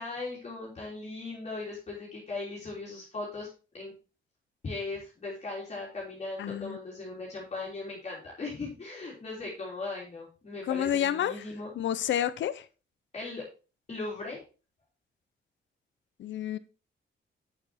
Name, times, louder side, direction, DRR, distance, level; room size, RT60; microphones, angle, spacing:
voice 1, 0.0-3.5 3.7-3.9 4.6-11.7 13.1-13.4 13.9-14.4, left 3 dB, 35° left, -5 dB, 3.6 m, -38 dB
voice 2, 6.4-6.8 10.7-11.3 11.8-12.6 16.2-16.6, left 10 dB, 75° left, 14 dB, 0.8 m, -29 dB
8.6 x 6.9 x 4.3 m, 0.34 s
wide cardioid pair, 165°, 19 cm